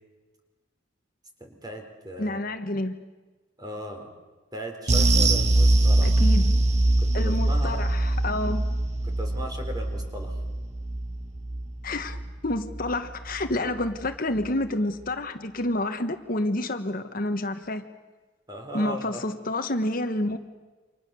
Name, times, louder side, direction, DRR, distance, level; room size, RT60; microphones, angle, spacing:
voice 1, 1.4-2.4 3.6-4.1 4.5-6.1 7.0-7.8 9.0-10.4 13.5-13.7 18.5-19.2, equal, 20° right, 4 dB, 4.0 m, -37 dB
voice 2, 2.2-3.0 6.0-6.5 7.1-8.7 11.8-17.8 18.7-20.4, left 1 dB, 45° left, 7 dB, 1.3 m, -29 dB
sound 1, 4.9-13.6 13.8-14.1 14.4-14.5, right 2 dB, 35° right, 1.2 m, -23 dB
29.5 x 26.0 x 7.0 m, 1.3 s
head